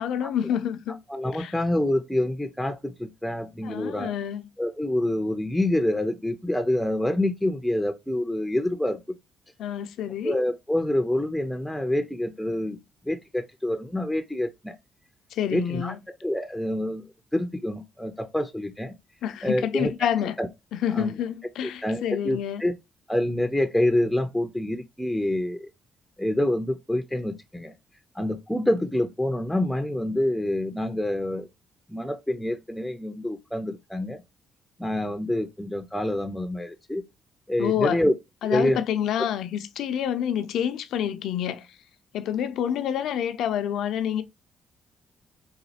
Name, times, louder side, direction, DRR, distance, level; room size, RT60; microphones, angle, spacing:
voice 1, 0.0-1.0 1.3-1.5 3.6-4.5 9.6-10.4 15.3-16.0 19.2-20.4 20.7-22.6 37.6-38.0 38.4-41.7 42.1-44.2, left 9 dB, 80° left, 0.4 m, -28 dB
voice 2, 1.1-4.1 4.6-9.0 10.2-12.8 13.0-14.8 15.5-15.9 16.2-17.0 17.3-18.9 19.4-19.9 20.4-20.5 20.9-21.1 21.6-22.7 23.1-25.7 26.2-27.7 28.2-31.5 31.9-34.2 34.8-37.0 37.5-38.1 38.5-38.8, left 1 dB, 5° left, 0.5 m, -26 dB
4.0 x 2.3 x 2.7 m
cardioid pair, 90°, 0 cm